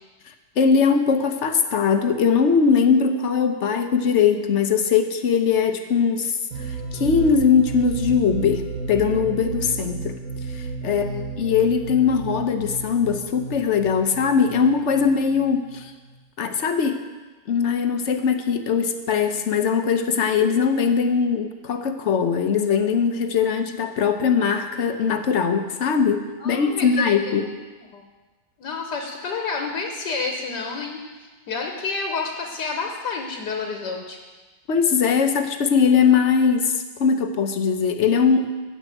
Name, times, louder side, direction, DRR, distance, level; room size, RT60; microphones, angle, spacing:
voice 1, 0.6-6.4 6.7-10.2 10.5-11.1 11.4-15.9 16.4-17.1 17.5-27.5 34.7-38.5, left 6 dB, 50° left, 7 dB, 0.9 m, -20 dB
sound 1, 6.5-16.1, right 4 dB, 55° right, 1.9 m, -33 dB
voice 2, 10.8-11.2 26.4-27.5 27.8-28.0 28.6-34.2, left 4 dB, 70° left, 2 dB, 1.7 m, -30 dB
13.5 x 5.4 x 9.0 m, 1.3 s
omnidirectional pair, 1.9 m